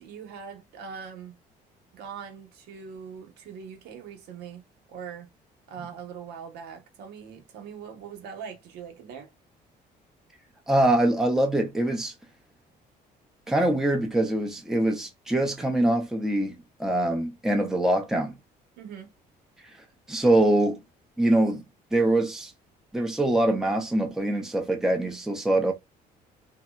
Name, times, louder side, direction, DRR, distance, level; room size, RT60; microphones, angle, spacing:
voice 1, 0.0-1.4 1.9-5.3 5.7-9.3 18.8-19.1, right 7 dB, 75° right, 0.9 m, -41 dB
voice 2, 10.7-12.1 13.5-16.5 16.8-18.4 20.1-20.8 21.2-21.6 21.9-22.5 22.9-25.7, right 1 dB, 5° right, 0.6 m, -23 dB
2.7 x 2.1 x 2.2 m
cardioid pair, 110°, 17 cm